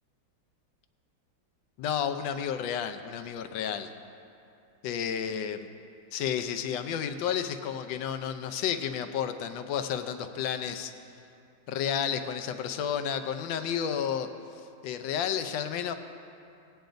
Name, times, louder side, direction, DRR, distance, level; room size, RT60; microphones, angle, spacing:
voice 1, 1.8-3.9 4.8-5.7 6.1-10.9 11.7-14.3 14.8-15.9, left 8 dB, 75° left, 8 dB, 1.3 m, -31 dB
20.0 x 9.1 x 2.6 m, 2.7 s
omnidirectional pair, 2.1 m